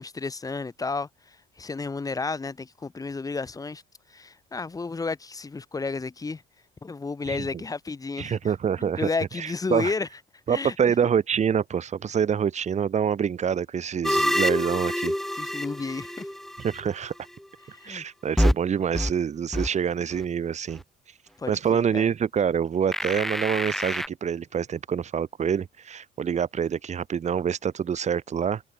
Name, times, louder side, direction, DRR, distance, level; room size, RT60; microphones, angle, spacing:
voice 1, 0.0-3.8 4.1-6.4 6.8-8.5 8.8-10.1 10.5-10.9 15.4-16.3 17.6-18.0 21.4-22.1, left 4 dB, 15° left, 1.8 m, -32 dB
voice 2, 8.2-9.1 9.4-9.9 10.5-15.1 16.6-17.1 17.8-20.8 21.5-28.6, right 7 dB, 35° right, 1.9 m, -26 dB
sound 1, 14.0-16.9 18.4-18.5 18.9-19.1 19.5-19.7 20.1-20.2 22.9-24.1, equal, ahead, 0.6 m, -26 dB
cardioid pair, 135°, 20 cm